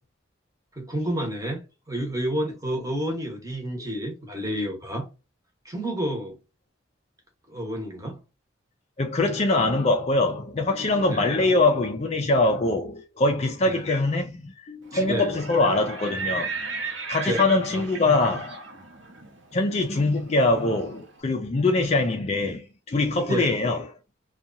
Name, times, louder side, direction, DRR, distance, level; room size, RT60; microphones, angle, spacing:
voice 1, 0.7-1.6 1.9-5.1 5.6-6.4 7.5-8.2 11.1-11.3 13.7-13.9 14.9-15.3 17.2-18.1 23.3-23.5, right 1 dB, 15° right, 0.9 m, -30 dB
voice 2, 9.0-16.5 17.1-18.7 19.5-23.9, left 2 dB, 35° left, 0.4 m, -23 dB
Livestock farm animals working animals, 15.2-21.1, right 4 dB, 65° right, 0.9 m, -36 dB
2.8 x 2.3 x 2.5 m
head